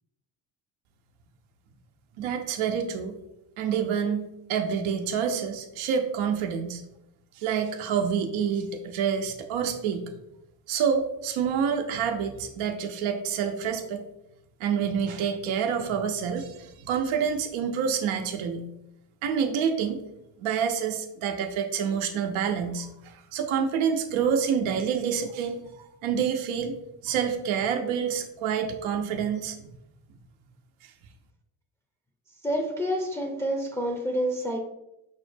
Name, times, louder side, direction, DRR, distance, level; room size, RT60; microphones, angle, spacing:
voice 1, 2.2-3.1 3.6-6.8 7.4-10.0 10.7-14.0 14.6-18.7 19.2-20.0 20.4-26.8 27.0-29.6 30.8-30.9, right 7 dB, 70° right, 5 dB, 0.6 m, -27 dB
voice 2, 32.4-34.6, equal, 5° left, 0 dB, 0.5 m, -28 dB
5.2 x 2.0 x 3.2 m, 0.86 s
supercardioid pair, 60°, 50 cm